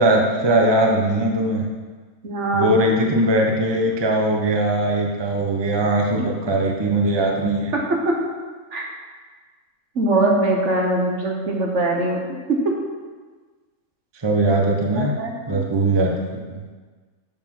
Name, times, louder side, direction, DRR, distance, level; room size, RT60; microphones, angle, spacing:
voice 1, 0.0-1.7 2.5-7.7 14.2-15.1 15.5-16.6, right 1 dB, 20° right, 0 dB, 0.9 m, -20 dB
voice 2, 2.2-2.8 6.2-6.3 7.9-8.2 8.7-8.8 9.9-12.2 12.5-12.7 15.0-15.6, right 2 dB, 55° right, 0 dB, 1.5 m, -22 dB
7.0 x 6.0 x 6.1 m, 1.4 s
omnidirectional pair, 1.5 m